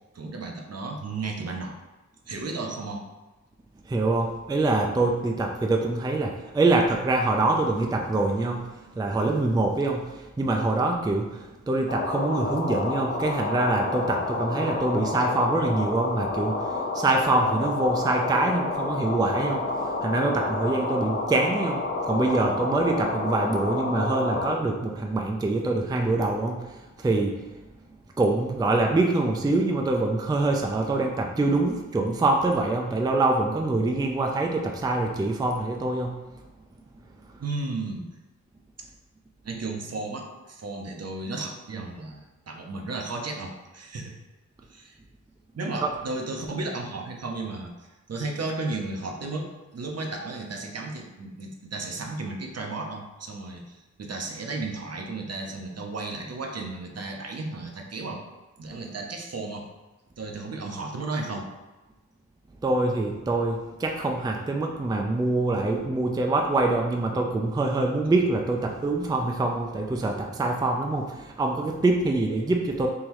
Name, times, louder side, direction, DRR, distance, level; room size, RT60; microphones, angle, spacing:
voice 1, 0.1-1.8 2.3-3.0 37.4-38.1 38.8-38.9 39.4-44.2 44.7-45.0 45.6-58.2 58.6-59.7 60.2-61.5, right 3 dB, 55° right, 2 dB, 0.6 m, -34 dB
voice 2, 3.9-8.7 9.0-16.6 16.9-19.7 20.0-26.7 27.0-27.4 28.2-36.2 45.8-45.9 62.6-72.9, right 2 dB, 15° right, 2 dB, 0.3 m, -25 dB
sound 1, 11.9-24.6, left 3 dB, 40° left, 0.5 m, -29 dB
3.7 x 3.1 x 2.9 m, 1.1 s
wide cardioid pair, 85°, 30 cm